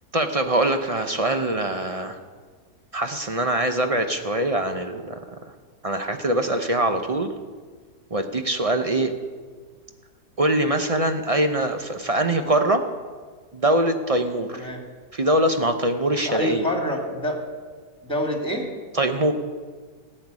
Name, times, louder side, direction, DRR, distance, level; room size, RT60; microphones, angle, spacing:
voice 1, 0.1-2.2 2.9-5.1 5.8-7.3 8.1-9.1 10.4-12.8 13.5-14.7 15.1-16.7 18.9-19.3, right 1 dB, 40° right, 7 dB, 0.5 m, -23 dB
voice 2, 14.5-14.8 16.2-17.4 18.0-18.7, left 1 dB, 5° left, 1 dB, 2.3 m, -26 dB
14.5 x 6.6 x 9.7 m, 1.5 s
omnidirectional pair, 1.7 m